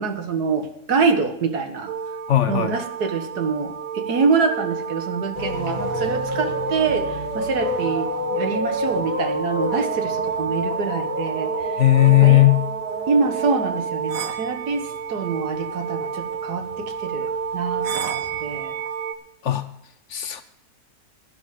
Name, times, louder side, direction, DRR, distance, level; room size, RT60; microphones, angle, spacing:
voice 1, 0.0-1.9 2.5-11.7 12.2-12.4 13.1-18.7, right 5 dB, 85° right, 7 dB, 1.9 m, -25 dB
sound 1, 1.9-19.1, right 6 dB, 65° right, 1.3 m, -30 dB
voice 2, 2.3-2.8 11.8-12.7 19.4-19.7 20.1-20.4, left 15 dB, 60° left, 11 dB, 0.9 m, -16 dB
sound 2, 5.3-15.3 15.6-18.6, left 2 dB, 45° left, 3.5 m, -30 dB
12.0 x 11.5 x 5.1 m, 0.80 s
omnidirectional pair, 1.6 m